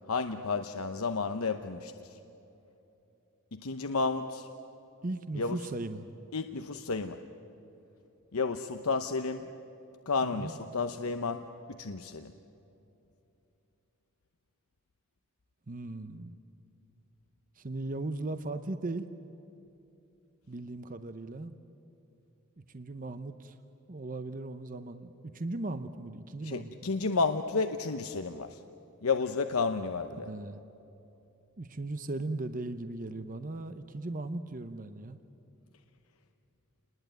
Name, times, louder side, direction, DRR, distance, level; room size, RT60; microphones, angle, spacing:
voice 1, 0.1-2.2 3.5-4.5 5.4-5.6 6.3-7.2 8.3-9.5 10.1-12.3 26.4-28.6 29.0-30.3, left 4 dB, 70° left, 7 dB, 0.8 m, -32 dB
voice 2, 5.0-6.1 10.2-10.6 15.7-16.4 17.6-19.1 20.5-21.6 22.7-23.6 23.9-26.9 30.2-30.6 31.6-35.2, right 2 dB, 35° right, 10 dB, 0.8 m, -38 dB
29.0 x 20.5 x 9.2 m, 2.9 s
head